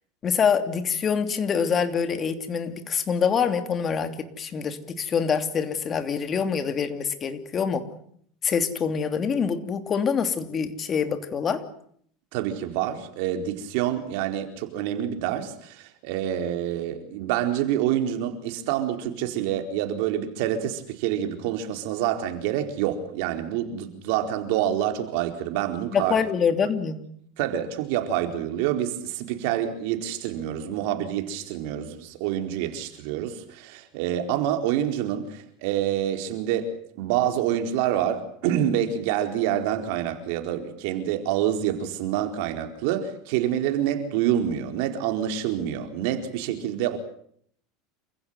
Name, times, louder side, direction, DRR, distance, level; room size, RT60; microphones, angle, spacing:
voice 1, 0.2-7.8 8.4-11.6 25.9-27.0, left 6 dB, 30° left, 2.9 m, -25 dB
voice 2, 12.3-26.1 27.4-36.7 37.0-47.0, right 11 dB, 65° right, 4.3 m, -27 dB
28.5 x 16.0 x 9.3 m
supercardioid pair, 130°, 0 cm